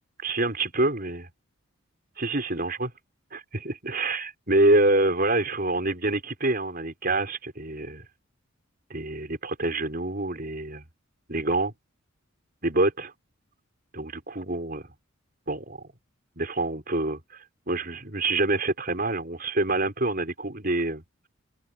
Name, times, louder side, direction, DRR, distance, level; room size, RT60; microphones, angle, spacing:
voice 1, 0.2-1.3 2.2-2.9 3.3-8.0 8.9-10.8 11.3-11.7 12.6-13.1 13.9-14.9 15.5-15.8 16.4-17.2 17.7-21.0, right 2 dB, 45° right, 5.2 m, -26 dB
head